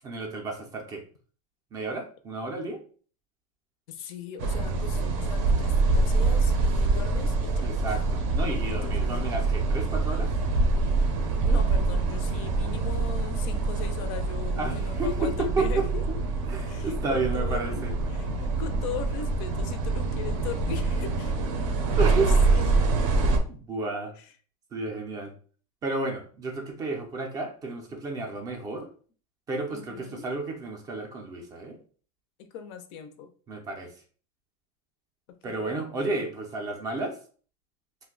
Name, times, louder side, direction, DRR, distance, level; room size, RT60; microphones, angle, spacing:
voice 1, 0.0-1.0 1.7-2.8 7.6-10.3 14.6-16.2 16.5-17.9 22.0-22.3 23.5-24.1 24.7-25.3 25.8-28.9 29.5-31.8 33.5-33.9 35.4-37.2, right 3 dB, 20° right, 3 dB, 0.4 m, -32 dB
voice 2, 3.9-8.0 8.7-9.2 11.4-16.0 16.7-21.3 22.1-22.7 24.2-24.3 29.7-30.2 32.4-33.3 35.3-35.8, left 7 dB, 45° left, 9 dB, 0.4 m, -39 dB
sound 1, 4.4-23.4, right 3 dB, 60° right, 0.6 m, -25 dB
2.6 x 2.1 x 3.7 m, 0.42 s
supercardioid pair, 160°, 19 cm